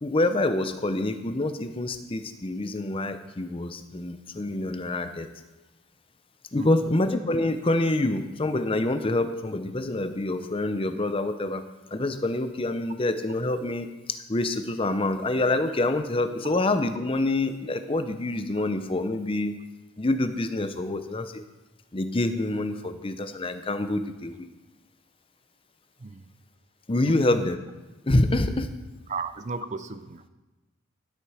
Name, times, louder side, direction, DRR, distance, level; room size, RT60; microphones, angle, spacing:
voice 1, 0.0-5.3 6.5-11.6 11.9-19.5 20.0-21.4 21.9-24.5 26.9-27.6 28.0-28.7, left 2 dB, 25° left, 9 dB, 0.6 m, -26 dB
voice 2, 6.6-6.9 26.0-26.3 27.1-27.3 29.1-30.3, right 4 dB, 35° right, 12 dB, 0.5 m, -35 dB
11.5 x 7.9 x 4.9 m, 1.1 s
head